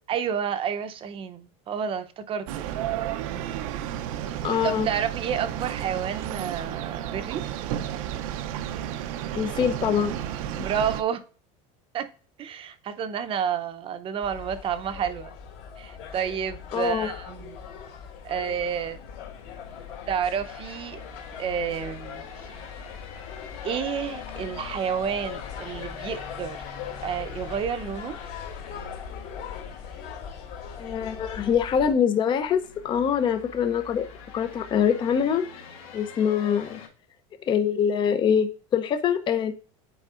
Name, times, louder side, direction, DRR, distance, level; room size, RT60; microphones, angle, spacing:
voice 1, 0.1-2.7 4.6-7.4 10.5-11.2 11.9-12.1 12.4-15.3 15.8-17.6 18.2-19.0 20.1-21.0 21.4-22.6 23.6-26.6 27.0-28.2, right 8 dB, 30° right, 0.7 m, -30 dB
sound 1, 2.5-11.0, right 11 dB, 80° right, 0.6 m, -32 dB
voice 2, 4.4-4.9 9.3-10.1 10.6-10.7 16.7-17.1 30.8-34.1 34.3-35.5 35.9-36.8 37.5-39.5, left 8 dB, 25° left, 0.6 m, -24 dB
sound 2, 14.2-31.9, left 7 dB, 60° left, 2.4 m, -40 dB
sound 3, 17.2-36.9, left 5 dB, 85° left, 1.8 m, -46 dB
9.1 x 4.7 x 2.4 m
cardioid pair, 145°, 17 cm